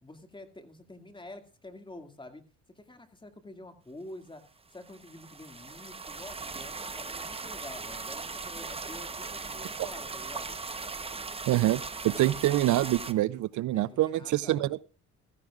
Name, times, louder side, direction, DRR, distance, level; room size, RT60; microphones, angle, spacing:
voice 1, 0.0-2.4 2.8-4.4 4.7-10.6 13.7-14.8, left 2 dB, 15° left, 2.2 m, -48 dB
sound 1, 4.8-13.1, right 4 dB, 20° right, 1.0 m, -39 dB
voice 2, 11.5-14.8, right 15 dB, 75° right, 0.5 m, -26 dB
15.5 x 14.5 x 2.4 m
cardioid pair, 90°, 30 cm